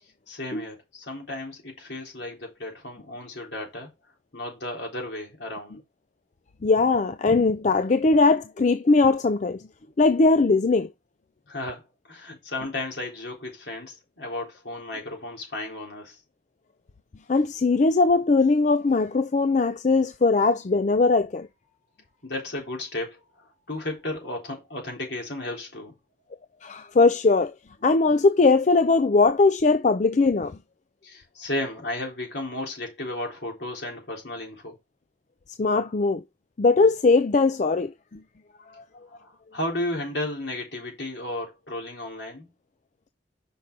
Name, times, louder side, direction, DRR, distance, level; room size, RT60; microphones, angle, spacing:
voice 1, 0.3-3.9 4.3-5.8 11.5-16.2 22.2-25.9 31.0-34.8 39.1-42.5, left 1 dB, 75° left, 3.8 m, -34 dB
voice 2, 6.6-9.6 10.0-10.9 17.3-21.5 26.6-27.5 27.8-30.6 35.6-36.2 36.6-38.2 38.8-38.9, left 3 dB, 45° left, 0.4 m, -20 dB
5.9 x 5.4 x 4.7 m
head